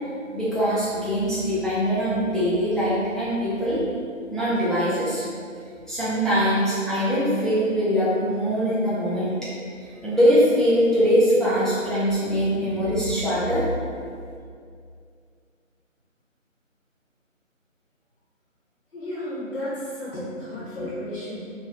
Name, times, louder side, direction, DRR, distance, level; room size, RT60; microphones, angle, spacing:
voice 1, 0.3-3.8 4.3-5.2 5.9-9.3 10.0-13.6, equal, ahead, -11 dB, 0.3 m, -22 dB
voice 2, 18.9-21.5, left 1 dB, 50° left, -10 dB, 0.6 m, -33 dB
2.5 x 2.0 x 2.5 m, 2.3 s
figure-of-eight pair, 170°, 40 cm